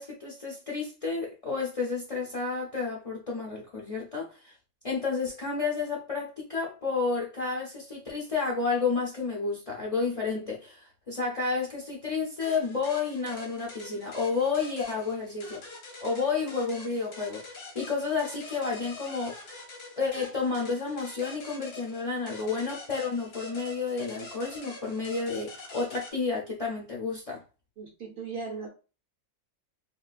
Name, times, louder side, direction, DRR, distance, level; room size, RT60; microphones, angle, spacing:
voice 1, 0.0-4.5 4.8-15.6 16.0-17.4 17.7-19.4 20.0-27.4, left 4 dB, 65° left, 0.3 m, -31 dB
sound 1, 12.4-26.1, left 2 dB, 80° left, 1.4 m, -45 dB
voice 2, 27.8-28.7, right 4 dB, 60° right, 0.7 m, -37 dB
3.5 x 2.3 x 2.4 m
omnidirectional pair, 1.5 m